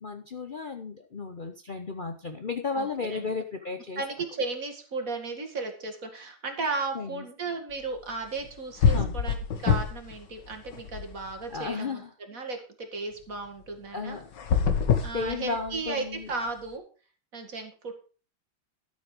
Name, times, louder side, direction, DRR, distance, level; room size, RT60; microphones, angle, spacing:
voice 1, 0.0-4.0 6.9-7.2 8.9-9.2 11.5-12.1 13.9-14.3 15.1-16.3, left 4 dB, 85° left, 6 dB, 0.4 m, -34 dB
voice 2, 2.7-3.3 4.0-14.2 15.0-16.8 17.3-17.9, right 3 dB, 45° right, 5 dB, 2.3 m, -35 dB
sound 1, 8.4-8.5 8.8-10.1 10.5-11.6 14.3-15.9, left 7 dB, 65° left, 1.9 m, -25 dB
13.0 x 7.5 x 4.9 m, 0.37 s
omnidirectional pair, 2.2 m